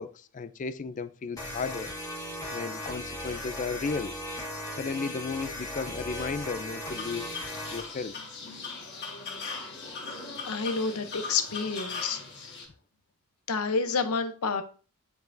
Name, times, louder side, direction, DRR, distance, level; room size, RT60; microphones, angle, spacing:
voice 1, 0.0-1.9 2.5-4.1 4.7-7.3 7.7-8.1, left 4 dB, 35° left, 0.4 m, -34 dB
sound 1, 1.4-7.9, left 1 dB, 15° left, 1.6 m, -37 dB
sound 2, 6.9-12.7, left 4 dB, 50° left, 1.7 m, -39 dB
voice 2, 10.4-12.2 13.5-14.6, left 4 dB, 85° left, 0.8 m, -29 dB
9.5 x 4.9 x 2.6 m
head